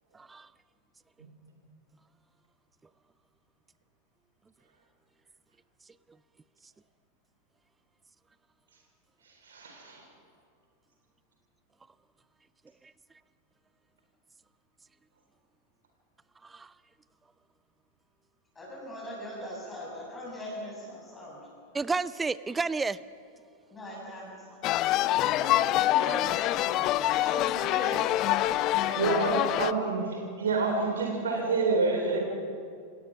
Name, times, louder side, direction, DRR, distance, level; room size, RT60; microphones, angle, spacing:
voice 1, 0.1-0.5 12.8-12.9 16.4-16.7 21.7-23.0 26.1-26.3, right 4 dB, 10° right, 0.5 m, -31 dB
voice 2, 9.2-10.1 28.9-32.2, right 3 dB, 65° right, 3.8 m, -28 dB
voice 3, 18.6-21.4 23.7-24.5 25.2-28.0, left 1 dB, 15° left, 7.1 m, -40 dB
sound 1, 24.6-29.7, left 14 dB, 35° left, 0.5 m, -26 dB
28.0 x 18.0 x 6.0 m
figure-of-eight pair, 90°, 0 cm